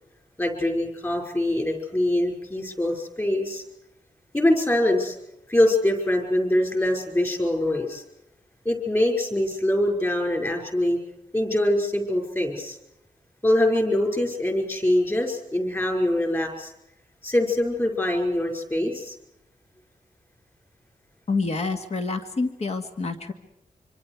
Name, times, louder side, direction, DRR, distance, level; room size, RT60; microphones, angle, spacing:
voice 1, 0.4-3.6 4.3-5.2 5.5-8.0 8.7-11.0 11.3-12.8 13.4-16.7 17.2-19.2, left 1 dB, 20° left, 2 dB, 5.5 m, -23 dB
voice 2, 21.3-23.3, left 3 dB, 50° left, 6 dB, 2.1 m, -27 dB
26.0 x 26.0 x 4.9 m, 0.84 s
wide cardioid pair, 165°, 14 cm